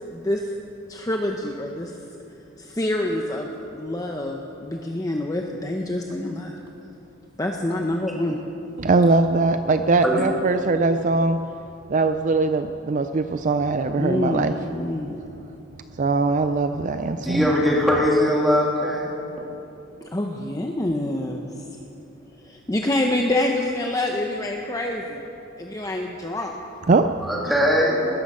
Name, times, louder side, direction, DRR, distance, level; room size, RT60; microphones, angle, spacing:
voice 1, 0.1-0.5 0.9-1.9 2.6-6.6 7.4-8.4 13.9-15.2 20.0-21.5 22.4-25.2 25.6-26.5, left 1 dB, 15° left, 2 dB, 0.8 m, -26 dB
voice 2, 8.8-11.4 11.9-14.5 16.0-17.5 26.9-27.1, right 3 dB, 40° right, 9 dB, 0.4 m, -21 dB
voice 3, 17.2-19.2 27.3-28.1, equal, ahead, -5 dB, 3.0 m, -20 dB
20.0 x 12.5 x 5.6 m, 2.9 s
head